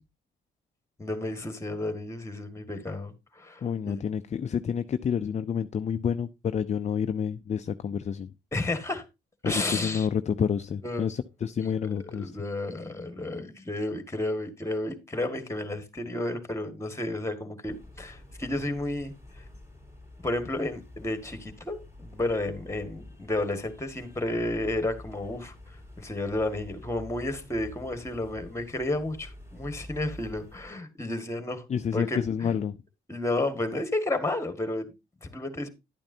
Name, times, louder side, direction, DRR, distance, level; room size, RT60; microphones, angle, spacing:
voice 1, 1.0-4.0 8.5-9.0 9.4-10.1 10.8-11.1 11.6-11.7 12.0-19.4 20.2-25.5 26.0-31.7 31.9-32.5 33.1-34.9 35.2-35.7, left 2 dB, 15° left, 1.8 m, -32 dB
voice 2, 3.6-8.3 9.4-12.3 31.7-32.8, left 7 dB, 35° left, 0.5 m, -29 dB
sound 1, 17.7-30.7, left 1 dB, 15° right, 3.2 m, -47 dB
11.0 x 8.8 x 2.7 m
cardioid pair, 90°, 20 cm